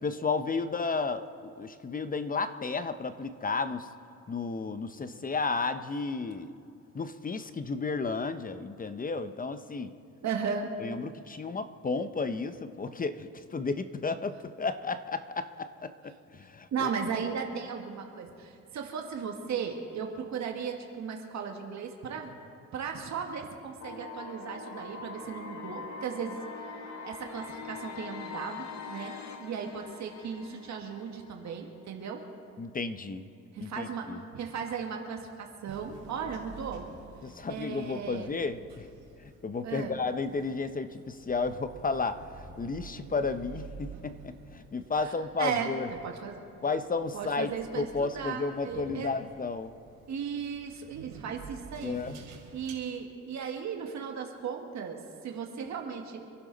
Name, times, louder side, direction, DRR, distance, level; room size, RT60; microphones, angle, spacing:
voice 1, 0.0-3.9 4.3-6.5 6.9-9.9 10.8-16.9 32.6-33.2 33.6-34.2 37.2-38.9 39.2-45.9 46.6-49.7 51.8-52.2, left 4 dB, 30° left, 11 dB, 0.8 m, -33 dB
voice 2, 10.2-10.7 16.7-22.3 22.7-26.4 27.0-32.2 33.5-36.9 37.5-38.4 39.6-40.0 45.0-46.4 47.1-49.1 50.1-52.0 52.5-56.2, right 6 dB, 65° right, 3 dB, 1.7 m, -36 dB
sound 1, 23.8-31.8, left 5 dB, 65° left, 1.5 m, -43 dB
sound 2, 35.7-52.7, right 5 dB, 90° right, 3.2 m, -50 dB
26.5 x 11.5 x 4.0 m, 2.6 s
cardioid pair, 90°, 30 cm